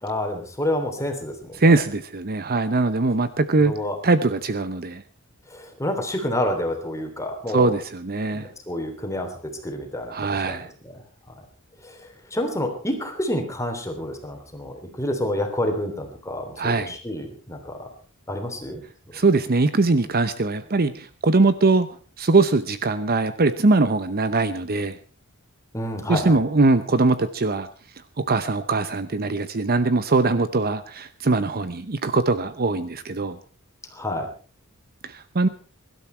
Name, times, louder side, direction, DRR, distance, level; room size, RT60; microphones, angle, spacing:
voice 1, 0.0-1.5 3.6-3.9 5.5-7.7 8.2-9.3 9.6-10.1 10.4-10.6 10.9-11.0 11.8-11.9 12.3-17.9 18.3-18.8 25.7-26.3 33.9-34.3, left 1 dB, 15° left, 4 dB, 3.3 m, -28 dB
voice 2, 1.5-3.7 4.0-5.0 7.5-8.5 10.1-10.7 16.6-16.9 19.1-21.9 22.2-25.0 26.1-27.7 28.2-33.4 35.0-35.5, right 3 dB, 45° right, 12 dB, 0.8 m, -21 dB
22.5 x 12.5 x 4.5 m, 0.39 s
head